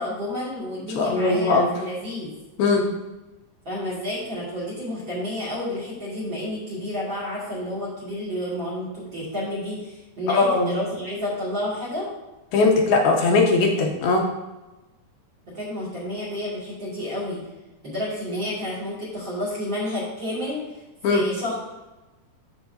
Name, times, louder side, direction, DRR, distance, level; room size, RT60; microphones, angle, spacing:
voice 1, 0.0-2.3 3.6-12.1 15.4-17.4 17.8-20.6 21.0-21.5, left 1 dB, 35° right, -6 dB, 2.5 m, -30 dB
voice 2, 1.0-1.7 2.6-2.9 10.3-10.7 12.5-14.2 21.0-21.2, left 3 dB, 80° left, 1 dB, 2.5 m, -19 dB
13.0 x 4.6 x 2.7 m, 1.1 s
omnidirectional pair, 4.6 m